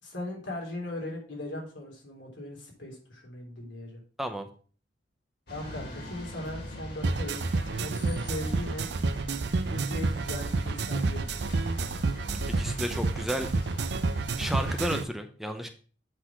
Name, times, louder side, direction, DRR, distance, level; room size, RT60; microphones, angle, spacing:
voice 1, 0.0-4.0 5.5-7.4 7.8-8.9 9.7-11.3, left 1 dB, 85° left, -1 dB, 3.5 m, -38 dB
voice 2, 4.2-4.5 12.5-13.5 14.4-15.7, equal, ahead, 6 dB, 0.7 m, -32 dB
sound 1, 5.5-15.0, left 1 dB, 60° left, 2.7 m, -42 dB
sound 2, 7.0-15.0, right 3 dB, 65° right, 0.5 m, -30 dB
7.9 x 4.2 x 6.0 m, 0.41 s
head